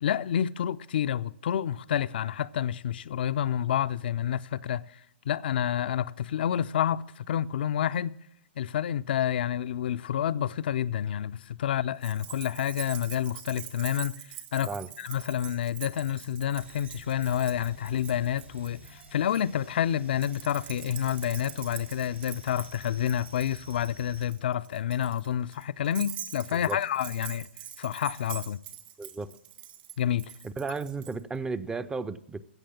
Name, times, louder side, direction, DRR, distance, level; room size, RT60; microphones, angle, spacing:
voice 1, 0.0-5.0 5.3-8.2 8.6-14.2 14.5-27.5 27.8-28.6 30.0-30.3, left 10 dB, 55° left, 0.4 m, -29 dB
Keys jangling, 12.0-19.4 20.2-31.1, right 11 dB, 50° right, 1.7 m, -44 dB
sound 1, 16.6-24.3, right 2 dB, 90° right, 3.9 m, -52 dB
voice 2, 29.0-29.3 30.4-32.5, right 4 dB, 10° right, 0.5 m, -34 dB
16.0 x 6.7 x 7.1 m
figure-of-eight pair, 115°, 6 cm